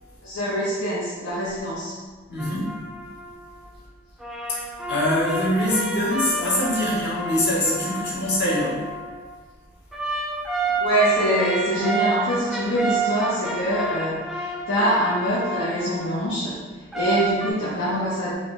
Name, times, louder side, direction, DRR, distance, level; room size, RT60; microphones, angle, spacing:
voice 1, 0.2-2.0 10.6-16.6 16.9-18.3, right 1 dB, 75° left, -9 dB, 0.8 m, -24 dB
voice 2, 2.3-2.7 4.6-8.9, left 1 dB, 55° left, -7 dB, 1.3 m, -24 dB
sound 1, 2.4-3.7 4.2-9.3 9.9-16.1 16.9-17.5, right 2 dB, ahead, 0.4 m, -29 dB
4.9 x 2.7 x 3.1 m, 1.4 s
head